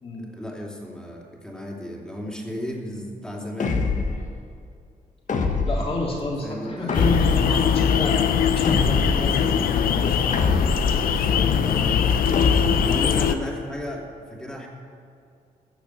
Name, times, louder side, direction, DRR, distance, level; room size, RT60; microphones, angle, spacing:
voice 1, 0.2-3.8 6.4-7.0 10.9-14.7, left 1 dB, 5° left, -1 dB, 2.7 m, -34 dB
sound 1, 3.6-4.3 5.3-5.9 6.9-7.6 8.6-9.3 10.3-11.0 12.3-13.0, left 3 dB, 60° left, 1.3 m, -24 dB
voice 2, 5.7-10.4, left 2 dB, 40° left, -3 dB, 3.5 m, -30 dB
sound 2, 6.9-13.3, left 8 dB, 80° left, 0.6 m, -21 dB
14.5 x 6.6 x 7.7 m, 2.4 s
cardioid pair, 75°, 15 cm